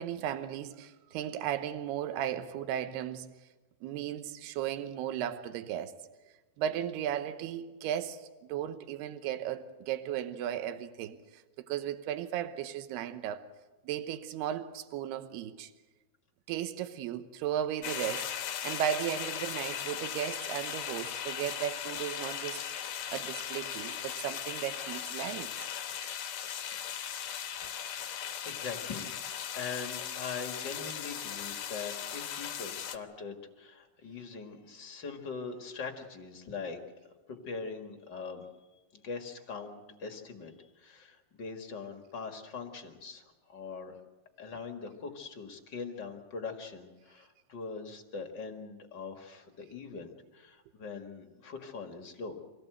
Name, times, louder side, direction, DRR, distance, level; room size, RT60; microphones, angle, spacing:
voice 1, 0.0-3.3 3.8-5.9 6.6-13.5 13.8-15.7 16.5-18.3 18.6-22.6 23.1-25.5, right 10 dB, 85° right, 3.0 m, -35 dB
sound 1, 17.8-33.0, left 9 dB, 65° left, 1.8 m, -38 dB
voice 2, 28.4-29.2 29.5-36.8 37.4-38.4 38.9-44.0 44.4-52.4, left 5 dB, 45° left, 1.5 m, -42 dB
26.0 x 18.0 x 8.0 m
omnidirectional pair, 4.6 m